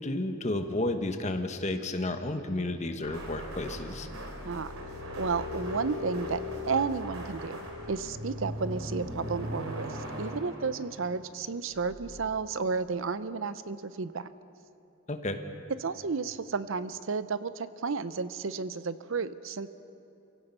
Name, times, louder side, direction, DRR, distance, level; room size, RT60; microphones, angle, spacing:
voice 1, 0.0-4.1 15.1-15.4, left 2 dB, 35° left, 7 dB, 1.2 m, -32 dB
sound 1, 3.0-11.3 11.7-12.2, left 1 dB, 90° right, 3.1 m, -38 dB
voice 2, 5.1-7.6 7.9-14.3 15.8-19.7, right 4 dB, 65° right, 14 dB, 0.6 m, -32 dB
28.5 x 17.0 x 5.5 m, 2.9 s
head